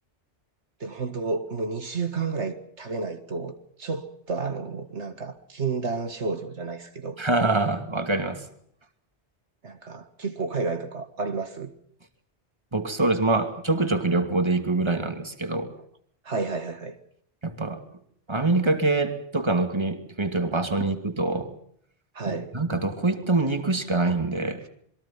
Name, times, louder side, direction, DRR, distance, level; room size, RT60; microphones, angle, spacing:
voice 1, 0.8-7.2 9.6-11.7 16.2-17.0 22.1-22.5, right 4 dB, 75° right, 2.1 m, -31 dB
voice 2, 7.2-8.4 12.7-15.7 17.4-17.8 18.3-21.6 22.3-24.6, right 2 dB, 25° right, 2.5 m, -25 dB
27.5 x 22.5 x 5.8 m
omnidirectional pair, 1.2 m